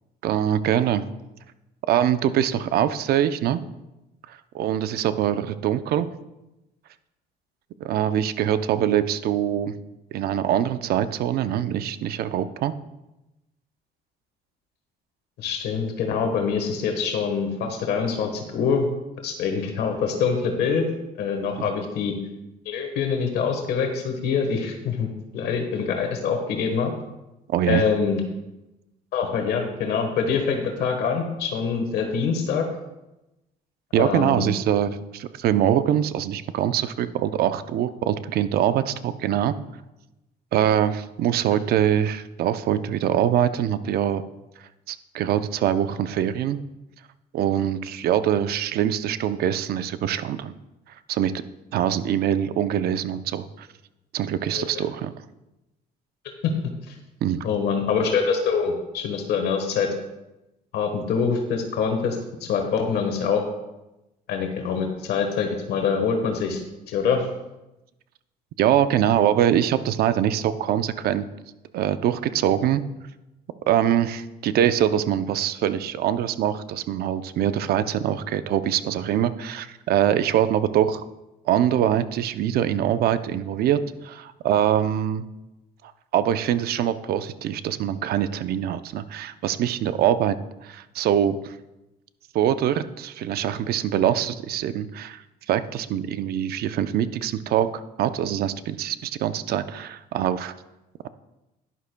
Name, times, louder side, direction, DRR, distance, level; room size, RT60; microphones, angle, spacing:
voice 1, 0.2-1.0 1.9-3.6 4.3-6.1 7.8-9.7 10.1-12.7 27.5-27.8 33.9-39.5 40.5-44.2 44.9-46.6 47.3-50.5 51.1-51.3 51.7-53.7 54.1-55.1 57.2-57.5 68.6-71.3 71.7-72.8 73.7-81.1 81.5-85.3 86.1-90.4 90.6-91.5 92.3-95.2 95.5-97.7 98.0-100.5, right 10 dB, 65° right, 12 dB, 0.6 m, -23 dB
voice 2, 15.4-18.9 19.2-20.8 21.2-22.1 22.6-26.9 27.7-28.2 29.1-32.6 34.0-34.5 54.5-54.8 56.4-56.5 56.8-57.0 57.4-59.9 60.7-63.4 64.3-67.3, left 6 dB, 75° left, 4 dB, 1.4 m, -25 dB
11.5 x 11.0 x 2.2 m, 0.97 s
cardioid pair, 110°, 17 cm